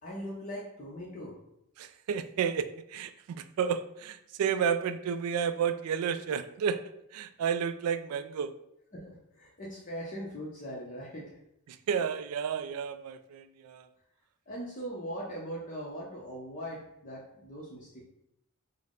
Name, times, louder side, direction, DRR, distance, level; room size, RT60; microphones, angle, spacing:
voice 1, 0.0-1.4 8.9-11.4 14.5-18.1, equal, 35° left, -4 dB, 0.7 m, -40 dB
voice 2, 1.8-6.8 7.1-8.5 11.7-13.9, right 7 dB, 90° right, 13 dB, 0.3 m, -31 dB
5.4 x 2.1 x 3.7 m, 0.79 s
head